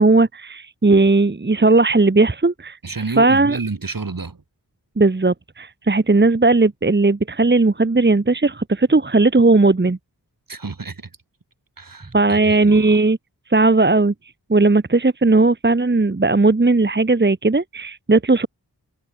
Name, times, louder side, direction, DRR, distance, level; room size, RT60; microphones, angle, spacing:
voice 1, 0.0-2.8 3.2-3.6 5.0-10.0 12.1-13.2 13.5-14.1 14.5-18.5, right 3 dB, 25° right, 1.3 m, -16 dB
voice 2, 2.8-4.4 10.5-11.1 11.8-13.0, right 4 dB, 55° right, 3.7 m, -30 dB
wide cardioid pair, 60°, 39 cm